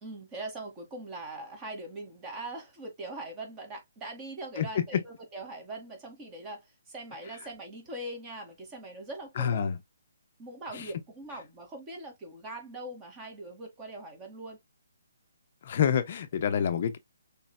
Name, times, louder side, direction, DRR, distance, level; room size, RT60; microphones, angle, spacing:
voice 1, 0.0-9.7 10.4-14.6, right 2 dB, 20° right, 2.0 m, -41 dB
voice 2, 4.6-5.0 9.4-9.8 10.7-10.9 15.6-17.0, left 8 dB, 45° left, 0.7 m, -28 dB
6.2 x 3.3 x 2.2 m
figure-of-eight pair, 140°, 0 cm